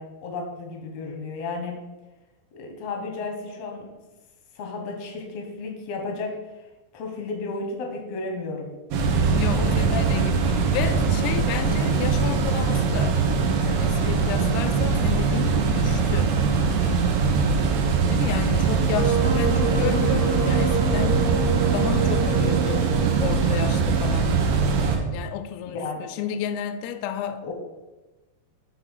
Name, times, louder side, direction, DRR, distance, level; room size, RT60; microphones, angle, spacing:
voice 1, 0.0-1.8 2.5-3.9 4.5-6.3 6.9-8.7 9.5-10.0 25.6-26.1 27.4-27.5, left 3 dB, 65° left, 2 dB, 1.6 m, -33 dB
sound 1, 8.9-25.0, right 5 dB, 85° right, 3.2 m, -22 dB
voice 2, 9.3-16.3 18.1-21.2 21.7-22.9 23.2-24.4 25.1-27.5, left 9 dB, 85° left, 9 dB, 2.5 m, -32 dB
Wind instrument woodwind instrument, 18.9-24.0, right 4 dB, 65° right, 1.0 m, -28 dB
9.8 x 4.0 x 6.4 m, 1.1 s
omnidirectional pair, 4.8 m